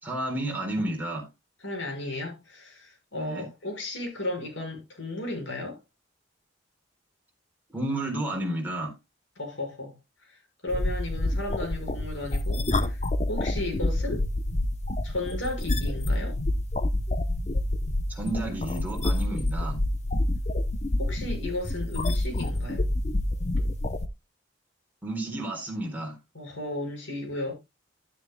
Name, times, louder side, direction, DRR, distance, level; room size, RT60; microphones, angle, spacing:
voice 1, 0.0-1.3 3.1-3.5 7.7-8.9 18.1-19.8 25.0-26.2, right 1 dB, 10° right, 4.1 m, -31 dB
voice 2, 1.6-5.8 9.4-9.9 10.3-14.3 15.0-16.4 21.0-22.9 26.3-27.5, left 2 dB, 75° left, 6.3 m, -34 dB
sound 1, 10.7-24.1, left 1 dB, 35° left, 0.9 m, -27 dB
12.0 x 10.5 x 2.3 m
head